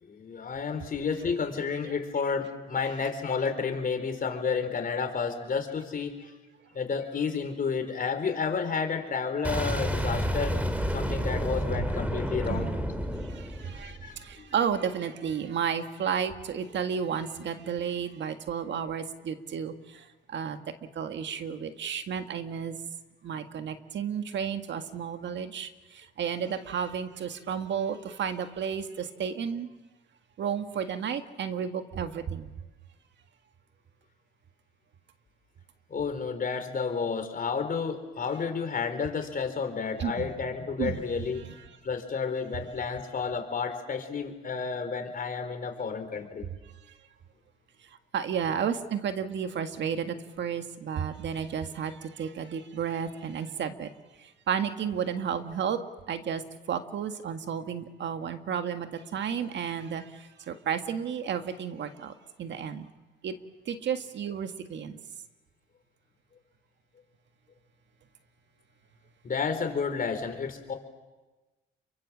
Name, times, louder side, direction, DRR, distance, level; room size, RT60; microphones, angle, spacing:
voice 1, 0.0-6.3 6.7-10.6 10.9-12.7 13.8-14.5 35.9-41.4 41.8-46.5 55.1-55.2 69.2-70.7, left 5 dB, 45° left, 6 dB, 4.1 m, -31 dB
Boom, 9.4-14.3, equal, 5° right, 2.7 m, -30 dB
voice 2, 13.3-20.6 21.0-22.8 23.2-29.7 30.4-32.5 40.0-40.3 40.8-41.0 48.1-53.9 54.5-55.8 56.1-56.4 56.7-62.1 62.4-62.9 63.2-63.4 63.7-65.0, right 7 dB, 65° right, 8 dB, 1.7 m, -32 dB
28.0 x 24.0 x 7.4 m, 1.2 s
cardioid pair, 90°, 20 cm